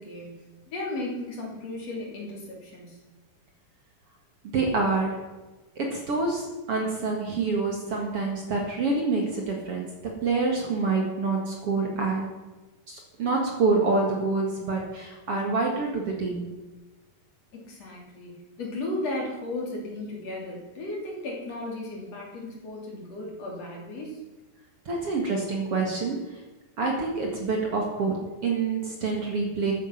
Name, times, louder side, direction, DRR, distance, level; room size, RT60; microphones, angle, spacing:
voice 1, 0.0-3.0 17.5-24.2, left 2 dB, 50° left, -1 dB, 4.1 m, -35 dB
voice 2, 4.5-5.2 5.8-9.9 10.2-12.3 12.9-16.5 24.9-26.3 26.8-29.7, right 3 dB, 45° right, 1 dB, 2.5 m, -27 dB
14.0 x 9.6 x 5.9 m, 1.2 s
omnidirectional pair, 4.0 m